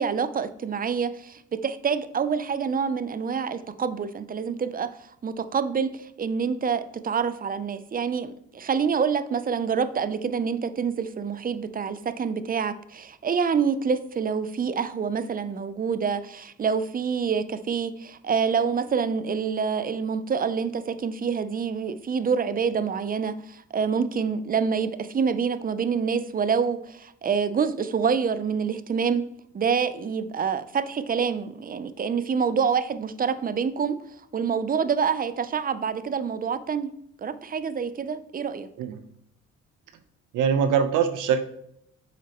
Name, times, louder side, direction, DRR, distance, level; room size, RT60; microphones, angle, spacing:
voice 1, 0.0-4.9 5.2-29.3 29.5-34.0 34.3-36.9 37.2-38.7, right 6 dB, 30° right, 13 dB, 0.5 m, -27 dB
voice 2, 40.3-41.4, right 7 dB, 85° right, 9 dB, 0.8 m, -22 dB
8.9 x 6.2 x 3.0 m, 0.74 s
cardioid pair, 90°, 30 cm